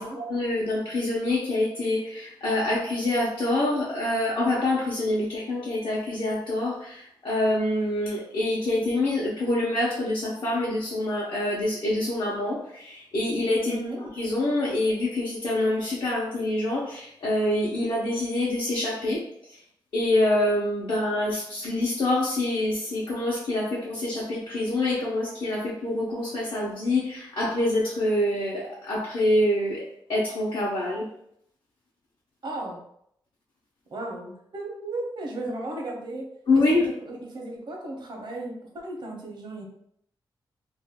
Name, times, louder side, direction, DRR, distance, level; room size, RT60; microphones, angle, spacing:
voice 1, 0.0-19.2 19.9-29.8 30.1-31.1 36.5-36.9, left 1 dB, 75° left, -6 dB, 0.7 m, -26 dB
voice 2, 13.6-14.0 32.4-32.8 33.9-36.3 36.5-36.6 37.1-39.6, right 2 dB, 65° right, 0 dB, 0.8 m, -35 dB
2.5 x 2.2 x 3.6 m, 0.72 s
wide cardioid pair, 90°, 9 cm